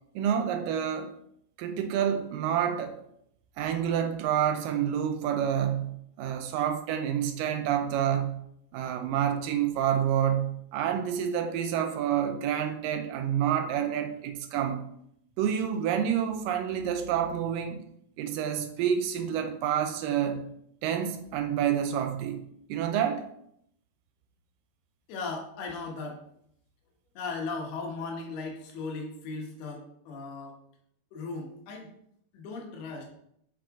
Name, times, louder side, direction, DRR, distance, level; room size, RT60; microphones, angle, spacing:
voice 1, 0.2-1.1 1.6-3.0 3.6-8.4 8.7-14.8 15.4-17.8 18.2-20.5 20.8-22.4 22.7-23.2, right 9 dB, 80° right, 7 dB, 2.0 m, -28 dB
voice 2, 25.1-26.2 27.1-30.6 31.1-31.9 32.3-33.0, left 4 dB, 85° left, 1 dB, 3.2 m, -37 dB
6.4 x 6.0 x 3.6 m, 0.72 s
omnidirectional pair, 4.4 m